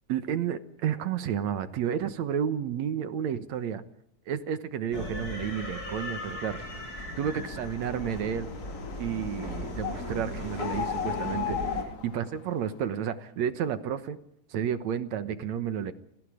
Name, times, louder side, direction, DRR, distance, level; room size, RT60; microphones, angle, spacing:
voice 1, 0.1-3.8 4.3-6.6 7.2-8.5 9.0-14.2 14.5-15.9, right 8 dB, 65° right, 11 dB, 2.3 m, -31 dB
sound 1, 4.9-11.8, left 1 dB, 25° left, 4.3 m, -37 dB
sound 2, 7.2-12.7, left 9 dB, 85° left, 3.6 m, -37 dB
29.0 x 18.5 x 5.0 m, 0.72 s
omnidirectional pair, 3.8 m